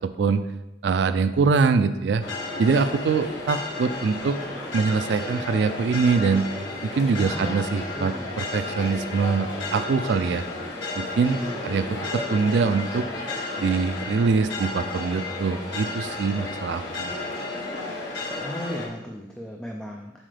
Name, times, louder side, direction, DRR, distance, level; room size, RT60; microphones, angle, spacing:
voice 1, 0.0-0.4 0.8-2.2 2.6-4.4 4.7-6.5 6.9-10.4 11.0-13.1 13.6-17.1, right 5 dB, 65° right, 11 dB, 0.3 m, -23 dB
sound 1, 2.2-18.9, left 2 dB, 80° left, 1.5 m, -33 dB
voice 2, 7.2-7.6 7.9-8.3 11.3-11.6 18.4-20.1, equal, 5° left, 0 dB, 0.4 m, -36 dB
7.4 x 4.5 x 3.3 m, 0.96 s
head